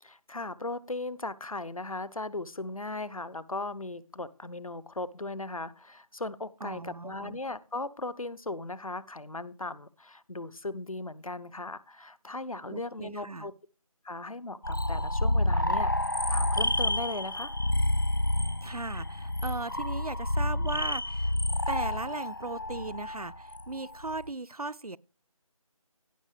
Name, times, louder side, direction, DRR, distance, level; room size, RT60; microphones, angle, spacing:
voice 1, 0.0-13.5 14.0-15.9 16.3-17.5, left 2 dB, 70° left, 1.0 m, -37 dB
voice 2, 6.6-7.4 12.7-13.5 18.6-21.4 21.7-25.0, right 3 dB, 90° right, 0.7 m, -37 dB
sound 1, 14.6-24.3, left 1 dB, 35° left, 0.5 m, -29 dB
16.0 x 6.1 x 5.0 m
figure-of-eight pair, 165°, 18 cm